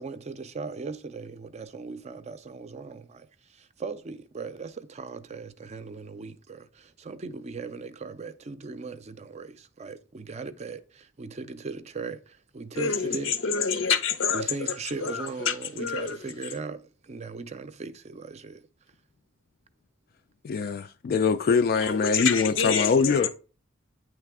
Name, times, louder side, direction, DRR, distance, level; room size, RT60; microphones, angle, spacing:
voice 1, 0.0-13.3 14.3-18.7, right 4 dB, 35° right, 0.4 m, -38 dB
voice 2, 12.8-14.7 15.0-16.2 21.8-23.3, left 6 dB, 80° left, 0.7 m, -27 dB
voice 3, 20.4-23.3, left 5 dB, 50° left, 0.3 m, -23 dB
8.9 x 3.3 x 3.5 m
head